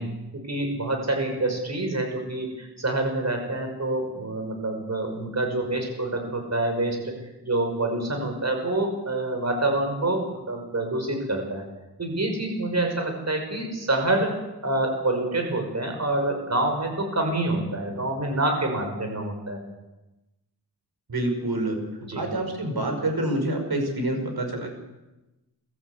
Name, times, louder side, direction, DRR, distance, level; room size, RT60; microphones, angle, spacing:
voice 1, 0.0-7.1 7.4-11.6 12.0-14.3 14.6-19.6 22.0-22.3, right 2 dB, 40° right, 3 dB, 5.7 m, -27 dB
voice 2, 21.1-21.8 22.1-24.7, right 1 dB, 60° right, 4 dB, 6.0 m, -27 dB
22.0 x 14.5 x 8.2 m, 1.0 s
wide cardioid pair, 100°, 41 cm